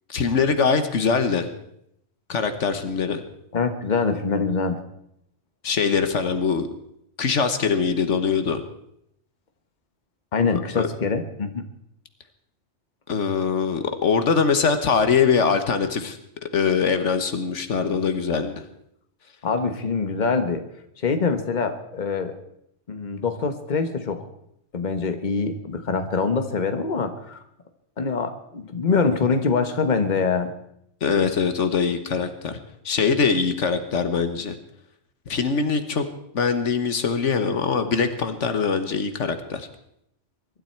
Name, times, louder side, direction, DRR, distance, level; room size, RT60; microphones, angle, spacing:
voice 1, 0.1-1.5 2.3-3.2 5.6-6.7 7.2-8.6 10.5-10.9 13.1-16.2 16.5-18.6 31.0-32.6 32.8-34.6 35.3-36.0 36.3-39.7, left 5 dB, 75° left, 9 dB, 1.5 m, -22 dB
voice 2, 3.5-4.8 10.3-11.6 19.4-20.6 21.0-22.4 22.9-24.2 24.7-27.4 28.0-30.5, left 4 dB, 40° left, 8 dB, 1.4 m, -24 dB
23.0 x 12.0 x 4.5 m, 0.75 s
omnidirectional pair, 1.3 m